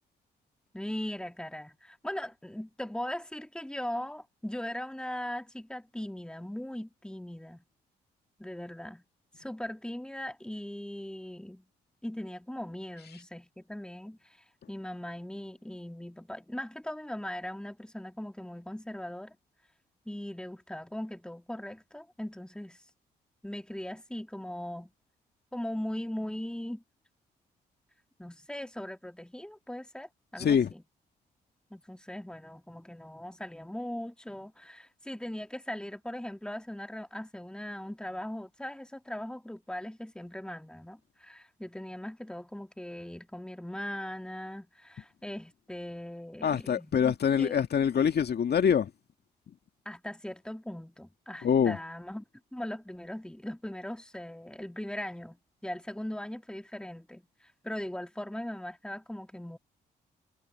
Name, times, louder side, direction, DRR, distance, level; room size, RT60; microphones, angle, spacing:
voice 1, 0.7-7.6 8.4-9.0 9.4-11.6 12.0-19.4 20.1-22.8 23.4-24.9 25.5-26.8 28.2-30.8 31.7-47.5 49.9-52.2 52.5-59.6, left 1 dB, 5° left, 2.5 m, -39 dB
voice 2, 30.4-30.7 46.4-48.9 51.4-51.8, left 7 dB, 55° left, 2.2 m, -25 dB
hypercardioid pair, 50°, 20 cm